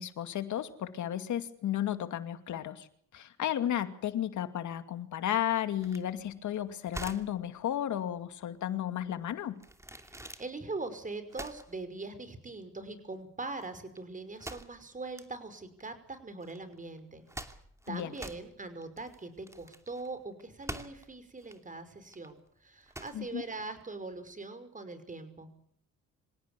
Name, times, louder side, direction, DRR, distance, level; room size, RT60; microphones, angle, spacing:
voice 1, 0.0-2.9 3.1-9.6 17.9-18.1 23.1-23.4, left 11 dB, 75° left, 9 dB, 2.5 m, -33 dB
sound 1, 5.8-24.3, right 1 dB, 10° right, 2.7 m, -47 dB
voice 2, 10.0-17.5 17.9-25.5, right 3 dB, 25° right, 11 dB, 5.6 m, -42 dB
26.5 x 17.5 x 8.5 m, 0.63 s
cardioid pair, 90°, 30 cm